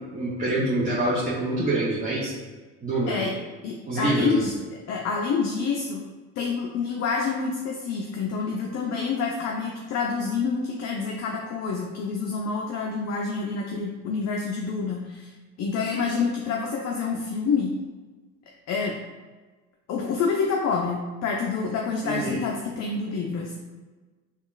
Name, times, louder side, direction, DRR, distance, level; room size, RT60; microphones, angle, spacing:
voice 1, 0.0-2.3 2.8-3.2 3.9-4.4 22.0-22.4, right 1 dB, 20° right, -6 dB, 0.7 m, -26 dB
voice 2, 3.6-4.5 4.9-6.0 6.4-15.3 15.6-17.7 18.7-19.0 19.9-23.5, left 5 dB, 45° left, 0 dB, 0.5 m, -27 dB
3.5 x 2.4 x 2.4 m, 1.3 s
hypercardioid pair, 60°, 38 cm